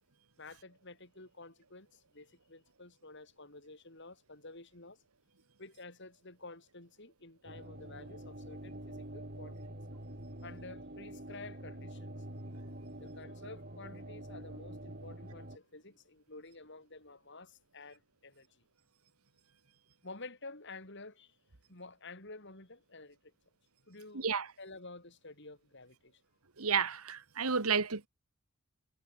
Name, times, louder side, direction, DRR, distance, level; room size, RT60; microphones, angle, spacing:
voice 1, 0.4-5.0 5.6-9.8 10.4-12.1 13.0-18.5 20.0-21.4 21.7-23.3 23.9-24.3 24.6-26.2, left 3 dB, 55° left, 5.7 m, -51 dB
sound 1, 7.4-15.6, right 1 dB, 45° right, 5.2 m, -46 dB
voice 2, 26.6-28.1, right 6 dB, 85° right, 1.7 m, -31 dB
head